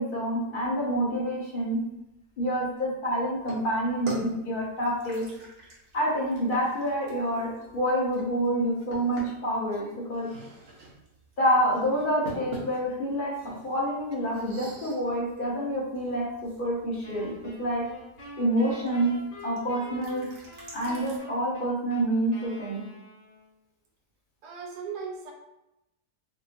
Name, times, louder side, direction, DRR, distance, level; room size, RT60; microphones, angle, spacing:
voice 1, 0.0-1.8 2.4-5.3 5.9-10.3 11.4-13.3 13.6-17.3 17.6-17.8 18.4-19.1 19.4-20.3 20.7-22.8, equal, 40° left, -5 dB, 0.9 m, -27 dB
sound 1, 3.4-21.2, right 3 dB, 50° right, 0.8 m, -46 dB
Wind instrument woodwind instrument, 17.0-23.6, left 1 dB, 85° left, 1.6 m, -46 dB
voice 2, 24.4-25.3, right 6 dB, 75° right, 0 dB, 1.2 m, -37 dB
3.6 x 2.9 x 2.4 m, 0.91 s
omnidirectional pair, 1.8 m